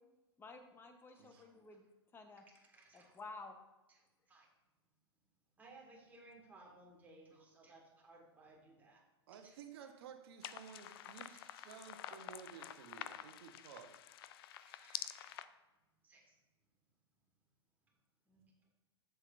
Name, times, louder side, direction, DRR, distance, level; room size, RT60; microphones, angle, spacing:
voice 1, 0.4-1.9 2.1-2.5 2.9-3.6, left 3 dB, 15° left, 6 dB, 0.9 m, -52 dB
voice 2, 1.1-1.5 2.4-3.2 3.9-4.5 5.6-9.0 9.3-9.9 10.9-11.5 13.4-13.5 14.6-15.4 16.0-16.4 17.9-18.0 18.3-18.5, right 2 dB, 10° right, -3 dB, 1.9 m, -62 dB
voice 3, 9.3-13.9, right 7 dB, 60° right, 5 dB, 1.0 m, -54 dB
sound 1, 10.4-15.5, left 11 dB, 55° left, 0.4 m, -48 dB
7.4 x 6.9 x 2.5 m, 1.1 s
hypercardioid pair, 110°, 14 cm